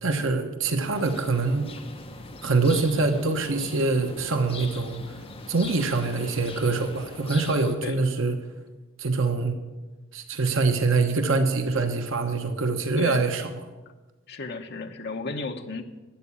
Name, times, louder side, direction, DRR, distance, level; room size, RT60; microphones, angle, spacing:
voice 1, 0.0-1.7 2.4-5.1 5.5-8.3 9.0-9.6 10.1-13.5, right 3 dB, 65° right, 6 dB, 1.1 m, -24 dB
sound 1, 0.9-7.7, left 3 dB, 25° left, 1.0 m, -41 dB
voice 2, 7.8-8.1 13.0-13.3 14.3-15.8, left 3 dB, 50° left, 5 dB, 1.1 m, -34 dB
13.0 x 8.5 x 8.5 m, 1.2 s
head